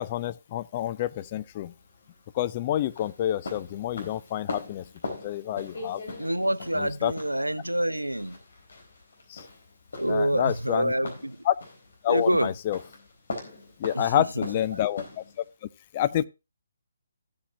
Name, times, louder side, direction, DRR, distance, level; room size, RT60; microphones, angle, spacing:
voice 1, 0.0-1.7 2.3-6.0 6.7-7.1 9.3-9.5 10.1-10.9 11.5-11.6 12.0-12.8 13.8-15.2 15.6-16.3, left 12 dB, 30° left, 0.6 m, -28 dB
sound 1, 1.1-15.5, left 3 dB, 55° left, 4.1 m, -41 dB
voice 2, 6.2-8.4 10.0-11.4 12.1-12.5 13.9-14.8, right 1 dB, 85° right, 0.5 m, -27 dB
14.5 x 8.4 x 2.6 m
figure-of-eight pair, 140°, 0 cm